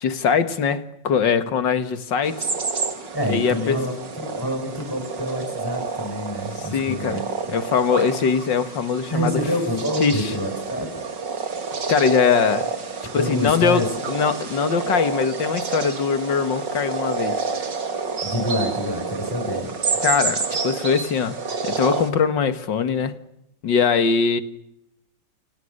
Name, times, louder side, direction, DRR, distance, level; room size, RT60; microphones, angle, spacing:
voice 1, 0.0-2.5 3.3-3.8 6.7-7.2 7.5-9.4 10.0-10.3 11.9-12.7 13.1-17.4 20.0-23.2 23.6-24.4, left 6 dB, 70° left, 2.4 m, -22 dB
sound 1, 2.2-22.1, right 4 dB, 70° right, 3.3 m, -29 dB
voice 2, 3.1-7.6 9.1-11.0 13.2-13.9 18.2-19.7, equal, 10° left, 5.4 m, -27 dB
29.5 x 29.5 x 6.7 m
omnidirectional pair, 2.0 m